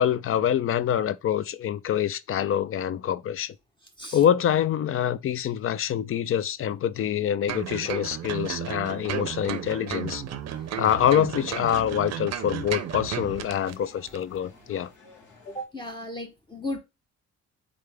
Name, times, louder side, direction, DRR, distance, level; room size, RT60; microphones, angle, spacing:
voice 1, 0.0-3.5 4.1-10.2 10.8-14.9, left 10 dB, 45° left, 0.4 m, -25 dB
sound 1, 7.5-13.8 14.1-14.2, right 9 dB, 60° right, 0.6 m, -33 dB
sound 2, 10.5-15.6, left 4 dB, 75° left, 1.9 m, -54 dB
voice 2, 15.5-16.8, left 1 dB, 15° left, 0.8 m, -35 dB
3.8 x 3.4 x 3.3 m
cardioid pair, 90°, 30 cm